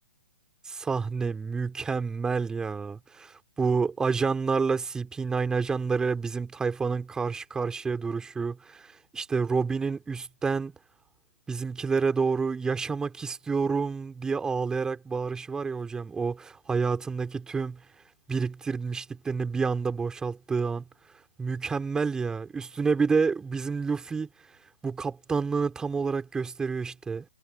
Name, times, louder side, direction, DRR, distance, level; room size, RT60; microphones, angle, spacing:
voice 1, 0.7-10.7 11.5-17.8 18.3-20.8 21.4-24.3 24.8-27.3, right 5 dB, 10° right, 3.8 m, -29 dB
figure-of-eight pair, 120°, 8 cm